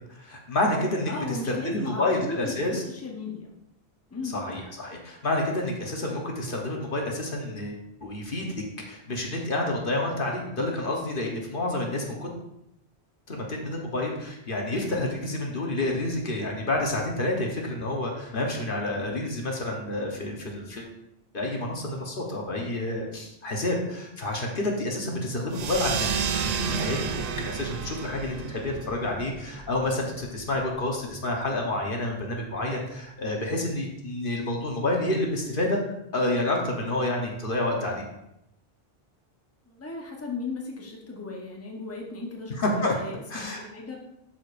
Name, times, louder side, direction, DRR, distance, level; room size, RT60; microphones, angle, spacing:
voice 1, 0.1-2.8 4.3-8.5 8.9-12.3 13.3-20.9 21.3-35.8 36.1-38.1 42.6-42.9 43.3-43.6, left 1 dB, 55° left, 0 dB, 1.2 m, -29 dB
voice 2, 1.1-3.5 4.1-4.4 39.7-44.0, left 3 dB, 15° left, -1 dB, 1.0 m, -36 dB
sound 1, 25.5-30.6, right 7 dB, 55° right, 0.5 m, -31 dB
11.5 x 4.8 x 2.5 m, 0.83 s
omnidirectional pair, 1.1 m